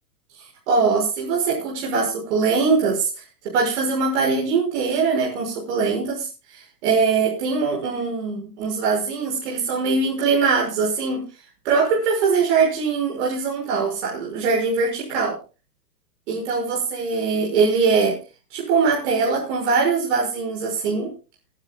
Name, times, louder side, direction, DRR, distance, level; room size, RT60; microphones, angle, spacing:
voice 1, 0.7-3.1 3.5-11.2 11.6-15.4 16.3-18.2 18.5-21.1, right 4 dB, 45° right, -2 dB, 6.1 m, -22 dB
28.5 x 10.0 x 2.4 m, 0.31 s
hypercardioid pair, 155°, 47 cm